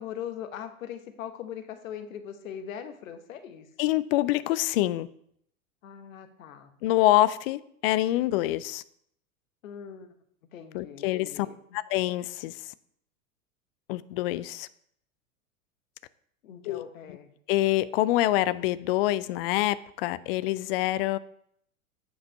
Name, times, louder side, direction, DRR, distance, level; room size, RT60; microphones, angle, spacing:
voice 1, 0.0-3.7 5.8-6.7 9.6-10.1 10.5-11.6 16.4-17.3, left 9 dB, 65° left, 8 dB, 1.1 m, -40 dB
voice 2, 3.8-5.1 6.8-8.8 10.7-11.5 11.7-12.6 13.9-14.7 16.6-16.8 17.5-21.2, left 15 dB, 45° left, 16 dB, 0.4 m, -26 dB
8.5 x 5.0 x 4.5 m, 0.69 s
figure-of-eight pair, 90°, 42 cm